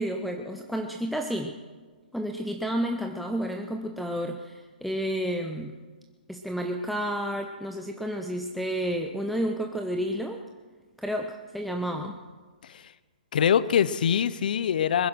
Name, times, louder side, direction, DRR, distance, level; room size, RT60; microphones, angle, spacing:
voice 1, 0.0-1.6 2.1-5.8 6.3-10.4 11.0-12.2, equal, ahead, 4 dB, 0.5 m, -31 dB
voice 2, 13.3-15.1, left 8 dB, 65° left, 17 dB, 0.6 m, -24 dB
21.0 x 10.5 x 6.2 m, 1.4 s
hypercardioid pair, 155°, 5 cm